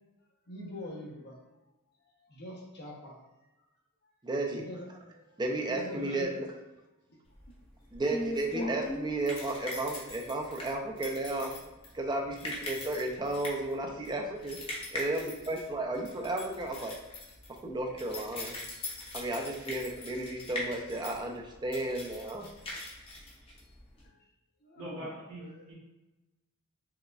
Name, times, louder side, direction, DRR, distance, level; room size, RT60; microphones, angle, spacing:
voice 1, 0.5-1.4 1.6-1.7 2.1-3.2 4.5-4.9 5.7-6.3 7.1-7.2 8.5-8.7 15.2-15.3 24.0-24.2 24.6-25.6, left 1 dB, 50° left, -2 dB, 0.8 m, -44 dB
voice 2, 4.2-4.6 5.4-6.5 7.9-11.5 11.9-14.6 14.9-17.0 17.6-18.6 19.1-22.5, right 2 dB, 20° right, 1 dB, 0.4 m, -33 dB
sound 1, 7.3-24.1, left 1 dB, 25° left, 0.7 m, -41 dB
voice 3, 24.7-25.7, equal, 90° right, -8 dB, 1.2 m, -42 dB
4.7 x 2.1 x 2.3 m, 1.0 s
head